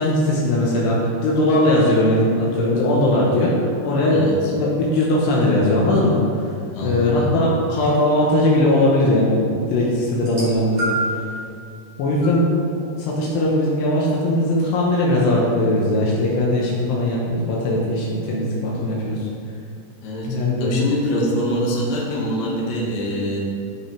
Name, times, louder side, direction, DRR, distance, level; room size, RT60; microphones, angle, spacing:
voice 1, 0.0-4.2 4.5-6.5 6.8-11.2 12.0-12.5 12.7-19.3 20.3-20.7, left 1 dB, 80° left, -4 dB, 3.2 m, -19 dB
voice 2, 4.1-4.5 6.7-7.3 20.0-23.4, equal, 65° left, -4 dB, 3.1 m, -24 dB
sound 1, 10.2-11.3 12.2-12.4 13.4-13.5, right 1 dB, 15° right, 1.5 m, -26 dB
15.0 x 5.5 x 3.4 m, 2.4 s
omnidirectional pair, 4.8 m